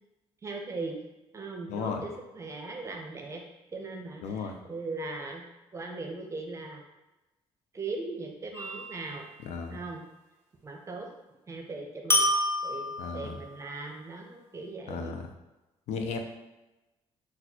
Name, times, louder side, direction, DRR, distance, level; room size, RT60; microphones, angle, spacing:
voice 1, 0.4-1.0 1.3-3.4 3.7-5.4 5.7-6.8 7.7-9.3 9.7-10.0 10.6-11.1 11.5-12.3 12.6-15.1, right 3 dB, 25° right, 2 dB, 0.5 m, -39 dB
voice 2, 1.7-2.1 4.2-4.6 9.4-9.8 13.0-13.4 14.9-15.3 15.9-16.2, left 5 dB, 80° left, 4 dB, 0.5 m, -34 dB
sound 1, 8.5-9.2 12.1-13.5, left 1 dB, 20° left, 0.7 m, -28 dB
4.1 x 2.2 x 2.8 m, 1.1 s
cardioid pair, 120°, 11 cm